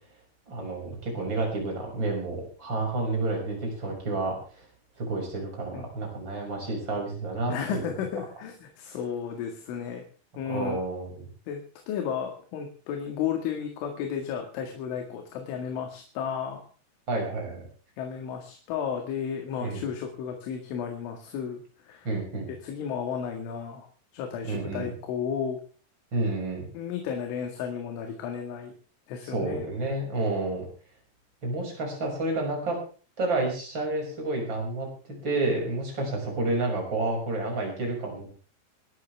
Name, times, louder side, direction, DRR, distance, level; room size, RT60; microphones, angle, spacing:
voice 1, 0.5-4.6 5.0-7.9 10.4-11.3 17.1-17.7 19.6-19.8 22.0-22.5 24.4-24.9 26.1-26.6 29.2-30.6 31.4-32.8 33.2-34.9 35.2-38.3, right 2 dB, 25° right, 0 dB, 6.7 m, -30 dB
voice 2, 7.5-10.0 10.4-10.8 11.5-16.6 18.0-22.1 22.6-23.9 24.1-25.6 26.7-28.7 29.1-29.7, left 7 dB, 80° left, 3 dB, 4.4 m, -33 dB
24.5 x 13.0 x 3.5 m, 0.39 s
omnidirectional pair, 5.5 m